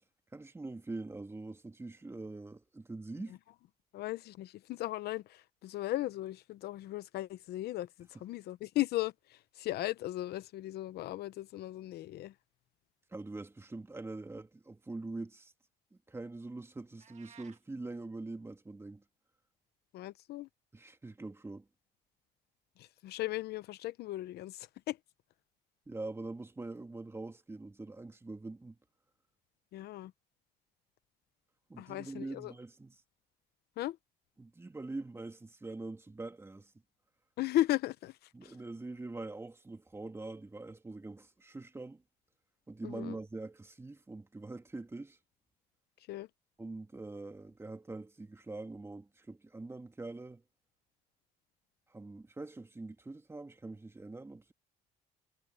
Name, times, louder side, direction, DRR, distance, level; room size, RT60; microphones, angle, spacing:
voice 1, 0.3-3.4 13.1-15.5 15.9-19.0 20.7-21.7 25.9-28.8 31.7-32.9 34.4-36.7 38.3-42.0 42.7-45.2 46.6-50.4 51.9-54.5, right 2 dB, 15° right, 2.7 m, -44 dB
voice 2, 3.9-12.3 19.9-20.5 22.8-25.0 29.7-30.1 31.8-32.5 33.8-34.0 37.4-38.6 42.8-43.2 46.1-46.3, left 15 dB, 70° left, 0.8 m, -37 dB
sound 1, 17.0-17.6, right 9 dB, 45° right, 2.1 m, -57 dB
cardioid pair, 110°, 17 cm